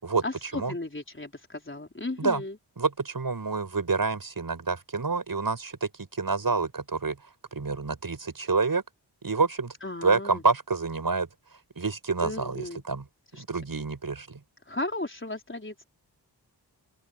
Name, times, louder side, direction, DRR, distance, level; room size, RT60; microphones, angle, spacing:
voice 1, 0.2-2.6 9.8-10.4 12.2-12.8 13.3-13.4 14.7-15.8, left 2 dB, 30° left, 4.5 m, -35 dB
voice 2, 2.8-5.9 6.2-7.2 7.5-8.8 9.2-9.7 10.0-11.3 11.8-13.0 13.4-14.4, right 4 dB, 55° right, 6.9 m, -27 dB
open air
cardioid pair, 40°, 42 cm